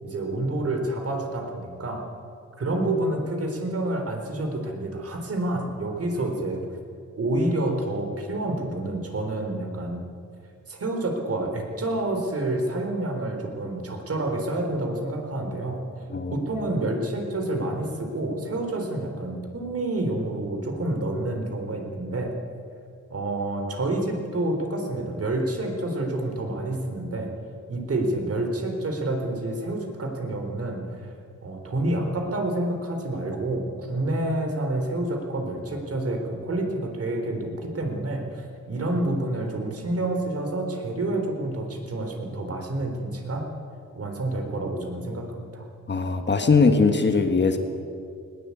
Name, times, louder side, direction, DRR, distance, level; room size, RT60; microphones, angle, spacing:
voice 1, 0.0-2.0 2.6-6.6 7.2-10.0 10.7-15.8 16.3-22.3 23.1-27.3 27.7-31.1 31.4-43.5 43.9-45.6, right 2 dB, 50° right, 3 dB, 3.9 m, -28 dB
voice 2, 45.9-47.6, left 4 dB, 35° left, 6 dB, 1.6 m, -20 dB
20.0 x 19.5 x 8.5 m, 2.3 s
wide cardioid pair, 175°, 31 cm